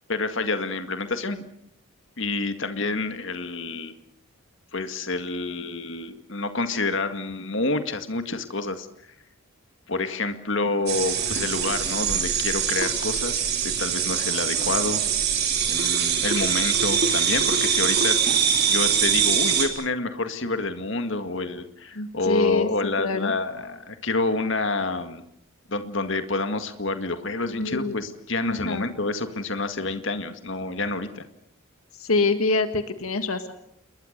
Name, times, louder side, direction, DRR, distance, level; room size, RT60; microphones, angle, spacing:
voice 1, 0.1-1.4 2.2-3.9 4.7-9.1 9.9-15.0 15.7-18.4 18.7-25.2 25.7-31.2, left 3 dB, 60° left, 8 dB, 1.9 m, -28 dB
sound 1, 10.9-19.7, right 7 dB, 45° right, 4.1 m, -23 dB
voice 2, 21.9-23.3 27.5-28.0 28.5-28.9 32.0-33.5, left 3 dB, 75° left, 9 dB, 1.7 m, -25 dB
28.5 x 22.0 x 6.7 m, 0.70 s
head